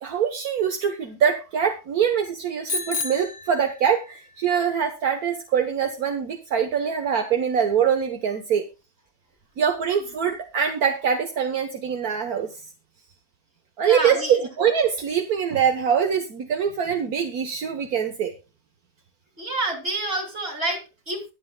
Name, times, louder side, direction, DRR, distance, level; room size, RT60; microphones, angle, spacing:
voice 1, 0.0-8.6 9.6-12.5 13.8-18.3, right 7 dB, 70° right, 5 dB, 1.6 m, -23 dB
Bicycle bell, 2.7-4.2, left 4 dB, 70° left, 1.7 m, -31 dB
voice 2, 13.8-14.4 19.4-21.2, right 2 dB, 40° right, 2 dB, 3.4 m, -28 dB
23.0 x 7.8 x 2.3 m, 0.28 s
omnidirectional pair, 1.6 m